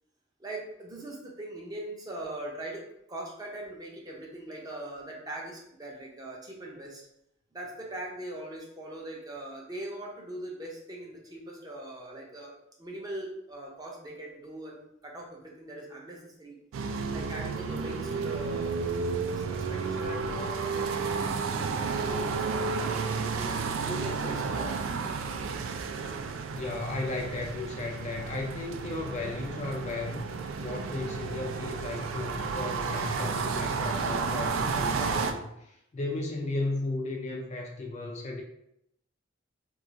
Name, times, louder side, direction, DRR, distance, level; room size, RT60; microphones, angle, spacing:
voice 1, 0.4-7.0 7.5-12.5 12.8-16.6 17.1-18.9 19.3-21.3 21.9-24.9 34.3-34.4, right 1 dB, 20° right, -2 dB, 0.6 m, -41 dB
sound 1, 16.7-35.3, right 5 dB, 85° right, 0.3 m, -32 dB
voice 2, 26.5-30.3 30.6-38.4, left 2 dB, 35° left, 1 dB, 0.3 m, -34 dB
2.4 x 2.3 x 3.9 m, 0.79 s
head